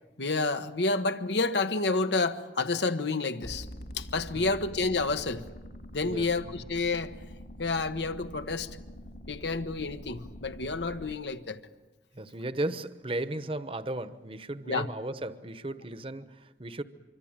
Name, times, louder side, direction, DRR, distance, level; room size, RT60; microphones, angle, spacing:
voice 1, 0.2-3.7 3.9-5.4 5.9-7.2 7.6-8.8 9.3-11.6 14.7-14.9, left 3 dB, 80° left, 9 dB, 1.2 m, -29 dB
sound 1, 3.4-11.2, equal, 60° left, 2.9 m, -45 dB
voice 2, 12.1-16.8, right 2 dB, 30° right, 12 dB, 0.9 m, -35 dB
25.5 x 25.0 x 8.9 m, 1.2 s
head